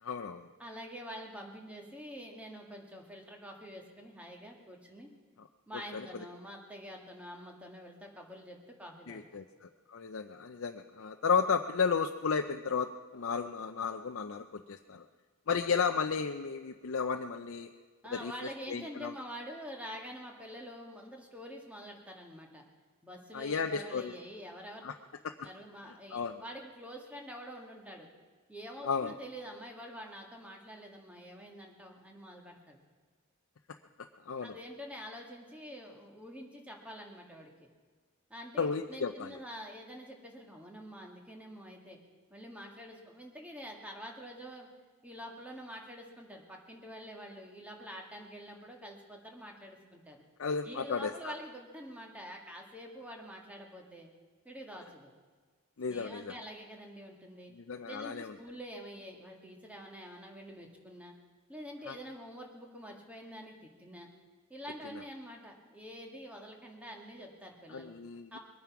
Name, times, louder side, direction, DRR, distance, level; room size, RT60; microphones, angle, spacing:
voice 1, 0.0-0.5 5.9-6.1 9.1-15.1 15.5-17.7 18.1-18.3 18.7-19.1 23.3-24.1 24.8-24.9 25.4-25.5 26.1-26.4 28.8-29.1 34.3-34.6 38.6-39.4 50.4-51.3 55.8-56.4 57.5-58.3 61.9-62.0 67.7-68.4, left 5 dB, 60° left, 5 dB, 0.5 m, -33 dB
voice 2, 0.6-5.1 5.7-9.4 18.0-22.6 23.0-24.8 25.4-28.1 28.5-32.8 34.4-37.7 38.3-42.0 42.3-44.7 45.0-50.2 50.7-54.1 54.5-55.1 55.9-57.5 57.9-61.1 61.5-64.1 64.5-67.9 68.3-68.4, equal, 5° right, 0 dB, 1.9 m, -46 dB
22.0 x 9.4 x 6.0 m, 1.5 s
head